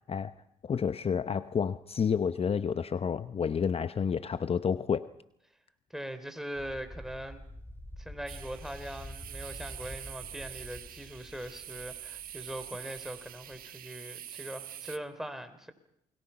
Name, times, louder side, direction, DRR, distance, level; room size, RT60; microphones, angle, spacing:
voice 1, 0.6-5.1, left 6 dB, 40° left, 12 dB, 0.8 m, -30 dB
voice 2, 5.9-7.4 8.0-15.7, right 1 dB, ahead, 9 dB, 3.4 m, -41 dB
sound 1, 6.6-13.7, left 1 dB, 15° left, 3.9 m, -48 dB
sound 2, 8.3-15.0, right 11 dB, 70° right, 1.3 m, -45 dB
29.0 x 22.0 x 5.7 m, 0.77 s
supercardioid pair, 75°, 15 cm